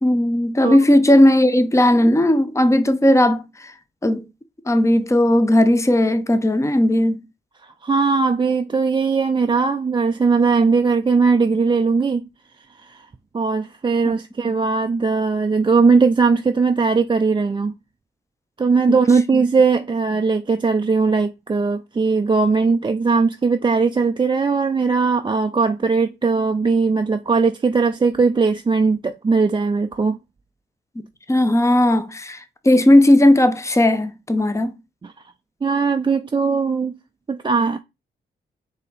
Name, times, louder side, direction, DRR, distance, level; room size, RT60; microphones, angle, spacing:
voice 1, 0.0-3.7 4.0-4.3 4.7-7.2 14.1-14.2 18.9-19.0 19.3-19.4 31.3-34.7, left 1 dB, 15° left, 0.7 m, -16 dB
voice 2, 7.6-12.3 12.8-13.0 13.3-17.7 18.6-30.2 35.0-35.1 35.6-36.9 37.3-37.8, right 4 dB, 25° right, 0.4 m, -19 dB
4.1 x 2.8 x 4.0 m
supercardioid pair, 45°, 21 cm